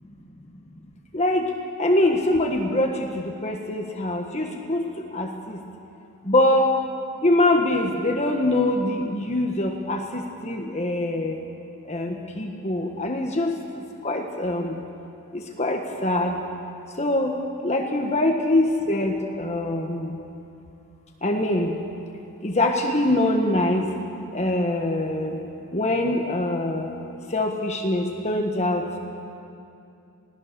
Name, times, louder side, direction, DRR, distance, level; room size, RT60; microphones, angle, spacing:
voice 1, 1.1-1.5 1.8-4.8 5.1-5.6 6.2-6.7 7.2-11.4 11.9-13.6 14.0-14.7 15.3-16.3 17.0-17.3 17.6-20.2 21.2-21.8 22.4-23.9 24.3-25.4 25.7-26.9 27.3-28.8, left 1 dB, 30° left, 2 dB, 1.4 m, -23 dB
28.0 x 18.5 x 6.8 m, 2.6 s
head